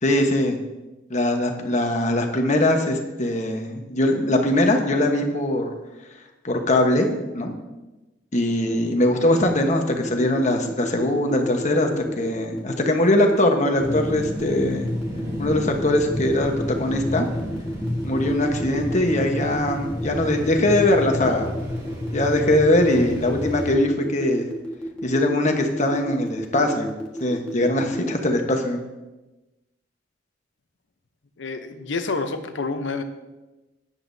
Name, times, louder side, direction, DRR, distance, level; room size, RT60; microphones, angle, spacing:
voice 1, 0.0-0.6 1.1-5.7 6.4-7.1 7.3-7.5 8.3-14.9 15.4-17.3 18.0-21.5 22.1-24.4 25.0-26.9 27.2-28.8, left 1 dB, 40° left, 3 dB, 1.2 m, -21 dB
sound 1, 9.7-28.2, equal, 5° left, 1.5 m, -32 dB
sound 2, 13.8-23.7, left 1 dB, 20° right, 2.1 m, -31 dB
voice 2, 31.4-33.0, left 3 dB, 80° left, 7 dB, 0.8 m, -28 dB
13.5 x 10.0 x 2.7 m, 1.1 s
head